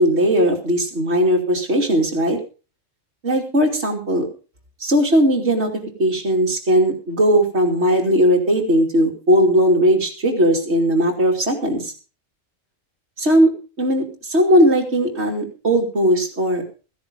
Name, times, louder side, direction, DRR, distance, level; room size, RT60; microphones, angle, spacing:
voice 1, 0.0-2.4 3.2-4.3 4.8-11.9 13.2-13.5 13.8-16.6, equal, 55° right, 3 dB, 3.1 m, -18 dB
15.5 x 10.5 x 5.3 m, 0.35 s
omnidirectional pair, 1.3 m